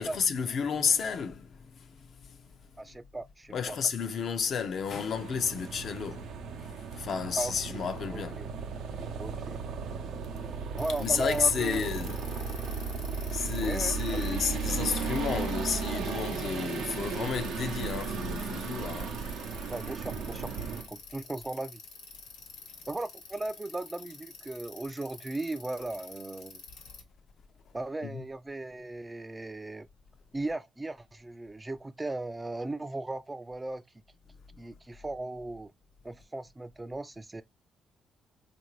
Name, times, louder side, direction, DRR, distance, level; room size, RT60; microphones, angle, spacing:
voice 1, 0.0-2.5 3.5-8.4 8.9-9.1 11.0-12.4 13.3-19.3 28.1-28.2, left 6 dB, 60° left, 0.5 m, -32 dB
voice 2, 2.8-3.8 7.4-7.8 8.1-8.5 9.2-9.6 10.8-11.9 13.6-14.4 19.7-20.5 20.9-21.8 22.9-26.6 27.7-29.9 30.3-33.8 34.6-35.7 36.0-37.4, right 2 dB, 15° right, 0.3 m, -37 dB
sound 1, 5.1-20.9, right 5 dB, 80° right, 0.6 m, -35 dB
Bicycle, 10.8-27.0, left 5 dB, 90° left, 1.1 m, -48 dB
3.5 x 2.6 x 3.1 m
cardioid pair, 90°, 0 cm